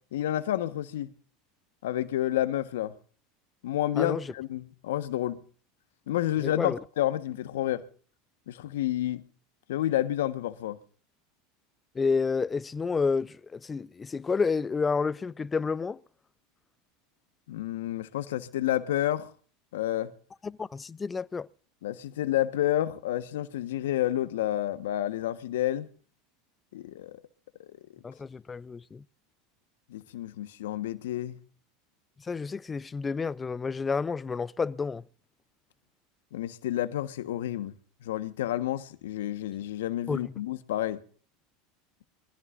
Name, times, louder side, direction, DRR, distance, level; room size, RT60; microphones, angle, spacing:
voice 1, 0.1-1.1 1.8-2.9 3.6-5.4 6.1-7.8 8.5-9.2 9.7-10.8 17.5-19.3 19.7-20.1 21.8-25.9 26.7-27.2 29.9-31.4 36.3-37.8 38.0-41.0, left 13 dB, 80° left, 1.2 m, -30 dB
voice 2, 4.0-4.3 6.4-6.8 12.0-16.0 20.6-21.5 28.0-29.0 32.3-35.0 40.1-40.2, left 5 dB, 20° left, 0.5 m, -30 dB
24.5 x 15.0 x 2.6 m
hypercardioid pair, 95°, 0 cm